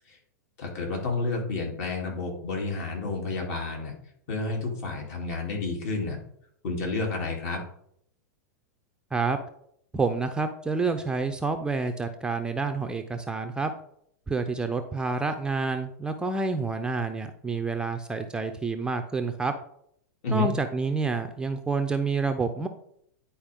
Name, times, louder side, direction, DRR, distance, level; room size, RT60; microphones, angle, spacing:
voice 1, 0.6-3.9 4.3-6.2 6.6-7.6 20.2-20.5, left 3 dB, 55° left, 0 dB, 2.9 m, -30 dB
voice 2, 9.9-13.7 14.3-19.5 20.3-22.7, right 4 dB, 10° right, 6 dB, 0.5 m, -28 dB
10.5 x 4.5 x 3.6 m, 0.69 s
hypercardioid pair, 130°, 10 cm